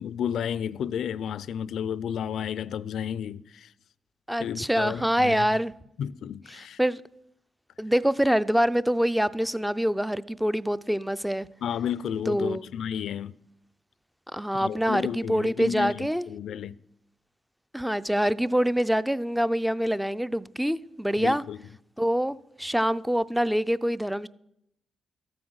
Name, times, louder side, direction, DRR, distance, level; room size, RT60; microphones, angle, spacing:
voice 1, 0.0-3.7 4.4-5.5 6.0-6.8 11.6-13.3 14.6-16.8 21.2-21.6, left 8 dB, 75° left, 0.4 m, -32 dB
voice 2, 4.3-5.7 6.5-7.0 7.8-11.5 12.3-12.6 14.3-16.3 17.7-21.4 22.0-24.3, equal, 5° right, 0.4 m, -25 dB
13.5 x 9.4 x 6.3 m
cardioid pair, 115°, 0 cm